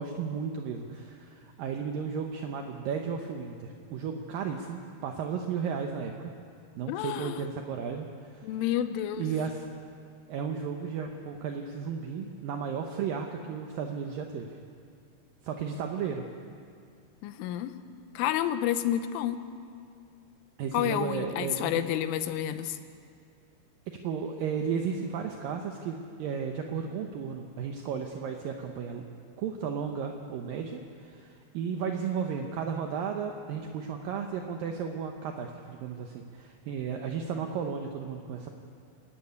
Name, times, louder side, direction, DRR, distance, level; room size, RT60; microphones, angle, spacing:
voice 1, 0.0-6.3 6.8-8.1 8.3-8.5 9.2-9.6 10.3-14.6 15.4-16.3 20.6-22.0 24.0-29.0 29.4-38.5, right 6 dB, 80° right, 3 dB, 2.0 m, -34 dB
voice 2, 6.9-7.4 8.4-9.3 17.2-17.7 18.1-19.4 20.7-22.8, left 11 dB, 85° left, 10 dB, 3.4 m, -29 dB
26.5 x 14.5 x 9.5 m, 2.3 s
omnidirectional pair, 5.5 m